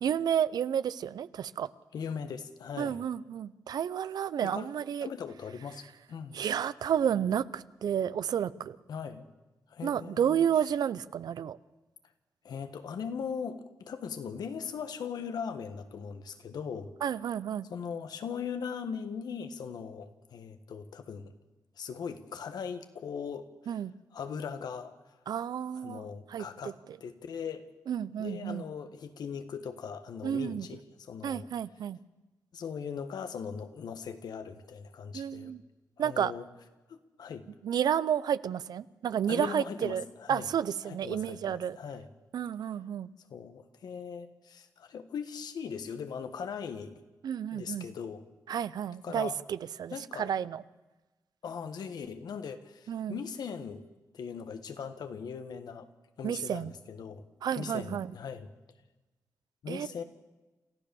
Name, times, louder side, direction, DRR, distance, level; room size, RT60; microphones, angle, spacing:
voice 1, 0.0-1.7 2.8-5.1 6.3-8.8 9.8-11.6 17.0-17.7 23.7-23.9 25.3-26.0 26.3-26.7 27.9-28.6 30.2-30.7 31.2-32.0 35.1-35.6 36.0-36.3 37.6-41.8 42.3-43.1 47.2-47.9 48.5-50.6 52.9-53.2 56.2-56.7 57.4-58.1 59.7-59.9, right 9 dB, 90° right, 17 dB, 0.6 m, -31 dB
voice 2, 1.9-3.0 4.4-4.7 5.0-6.4 8.9-9.3 9.7-10.7 12.4-16.9 17.7-21.3 21.8-23.8 24.1-24.9 25.8-27.6 28.2-31.5 32.5-35.5 36.0-36.4 36.9-37.5 39.3-40.5 40.8-42.1 43.3-47.0 47.5-48.2 49.0-49.4 49.9-50.3 51.4-53.9 54.1-55.9 56.2-57.2 57.5-58.5 59.6-60.0, left 6 dB, 85° left, 9 dB, 1.5 m, -39 dB
28.0 x 14.0 x 7.0 m, 1.1 s
cardioid pair, 75°, 7 cm